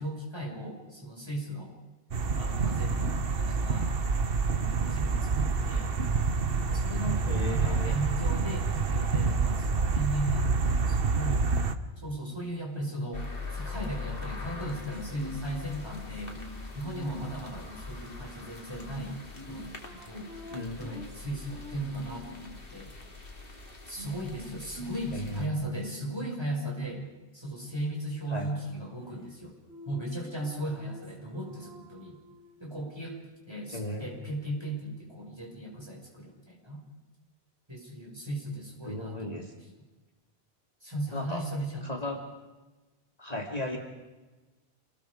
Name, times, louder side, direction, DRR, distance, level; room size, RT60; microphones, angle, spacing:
voice 1, 0.0-1.8 2.3-4.0 4.5-5.9 6.7-11.5 12.0-16.4 16.7-19.2 19.5-19.8 20.0-20.3 20.8-22.9 23.9-27.1 27.3-29.6 29.9-32.2 32.6-33.2 33.5-36.8 37.7-39.7 40.8-42.1, right 1 dB, 25° right, -1 dB, 5.7 m, -37 dB
sound 1, 2.1-11.7, right 4 dB, 65° right, 1.3 m, -27 dB
voice 2, 7.3-8.0 20.5-21.0 25.1-25.5 28.3-28.5 33.7-34.1 38.8-39.5 41.1-41.4 41.8-42.2 43.2-43.8, left 1 dB, 40° left, 1 dB, 2.4 m, -35 dB
sound 2, 13.1-25.5, left 4 dB, 60° left, 2.8 m, -42 dB
sound 3, 14.3-17.6 18.8-22.6 24.0-27.1 28.3-29.4 29.7-32.6, equal, 90° right, 2.4 m, -46 dB
27.5 x 19.5 x 5.0 m, 1.2 s
omnidirectional pair, 1.1 m